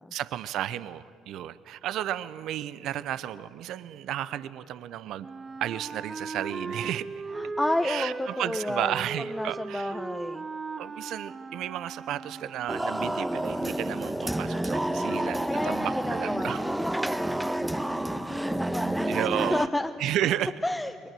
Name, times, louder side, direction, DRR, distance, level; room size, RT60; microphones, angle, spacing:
voice 1, 0.1-5.3 5.6-7.1 7.8-10.0 10.8-16.6 19.1-19.7 20.0-20.5, right 12 dB, 65° right, 16 dB, 0.8 m, -33 dB
Wind instrument woodwind instrument, 5.2-12.9, right 4 dB, 35° right, 1.2 m, -38 dB
voice 2, 7.3-8.9 9.3-10.4 15.0-19.2 19.5-19.9 20.6-20.9, left 1 dB, 10° left, 5 dB, 1.1 m, -32 dB
sound 1, 12.7-19.7, right 1 dB, 10° right, 1.2 m, -29 dB
29.5 x 22.5 x 7.7 m, 2.2 s
hypercardioid pair, 55°, 0 cm